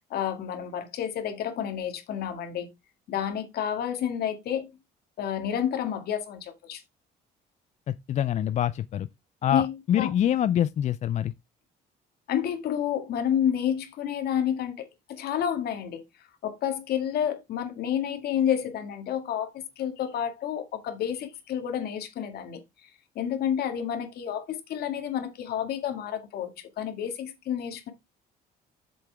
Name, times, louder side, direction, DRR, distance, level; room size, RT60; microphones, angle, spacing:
voice 1, 0.1-2.7 3.1-4.7 5.2-6.8 9.5-10.1 12.3-16.0 16.4-22.9 23.2-27.9, left 9 dB, 70° left, 2.1 m, -30 dB
voice 2, 7.9-9.1 9.4-11.3, left 10 dB, 45° left, 0.4 m, -25 dB
8.4 x 6.9 x 3.5 m
cardioid pair, 110°, 17 cm